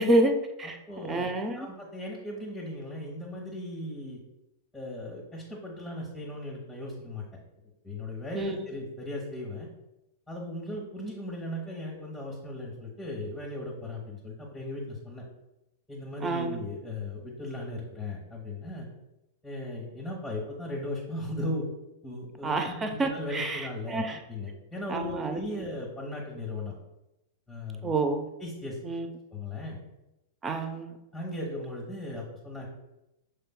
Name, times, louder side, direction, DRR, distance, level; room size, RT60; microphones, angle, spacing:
voice 1, 0.0-0.8 1.1-1.7 8.4-8.7 16.2-16.5 22.4-24.2 24.9-25.6 27.8-28.3 28.8-29.1 30.4-30.9, right 2 dB, 20° right, 5 dB, 0.6 m, -28 dB
voice 2, 0.9-1.3 1.6-4.2 4.7-7.2 7.8-9.7 10.3-15.2 15.9-18.9 19.4-21.7 22.0-24.0 24.3-26.7 27.5-27.9 28.4-28.8 29.3-29.8 31.1-32.7, left 1 dB, 5° left, -3 dB, 1.1 m, -37 dB
6.5 x 3.4 x 2.2 m, 0.92 s
figure-of-eight pair, 95°, 0 cm